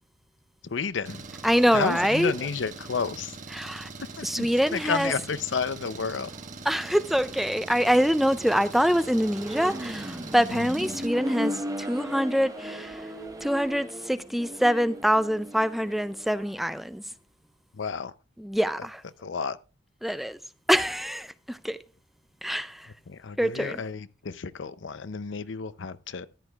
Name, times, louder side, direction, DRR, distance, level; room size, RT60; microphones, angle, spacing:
voice 1, 0.6-1.3 1.7-3.4 4.1-6.3 10.5-10.7 17.7-18.1 19.2-19.6 23.1-26.3, left 5 dB, 85° left, 0.6 m, -31 dB
Engine, 1.1-11.1, right 4 dB, 45° right, 1.2 m, -42 dB
voice 2, 1.4-2.3 3.5-3.9 4.2-5.1 6.7-13.1 13.4-17.0 18.4-19.0 20.0-20.4 20.7-21.8 22.4-22.9 23.4-23.8, equal, ahead, 0.4 m, -25 dB
Accelerating revving vroom, 6.3-16.6, equal, 20° right, 1.0 m, -38 dB
14.0 x 10.5 x 2.4 m
head